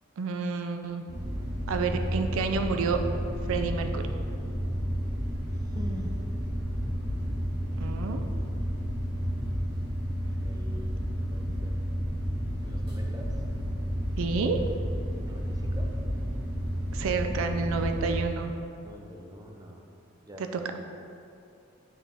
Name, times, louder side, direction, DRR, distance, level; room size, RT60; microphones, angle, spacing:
voice 1, 0.2-1.0 1.7-3.0 3.5-4.0 7.8-8.3 14.2-14.6 16.9-18.5 20.4-20.5, right 4 dB, 80° right, 6 dB, 0.4 m, -29 dB
sound 1, 1.1-18.2, equal, 50° right, 1.1 m, -31 dB
voice 2, 5.5-6.2 7.6-8.5 10.2-11.9 12.6-13.4 15.2-15.9 18.8-19.8 20.2-20.4 20.7-20.8, equal, 20° right, 1 dB, 0.5 m, -45 dB
8.7 x 3.7 x 3.4 m, 2.6 s
head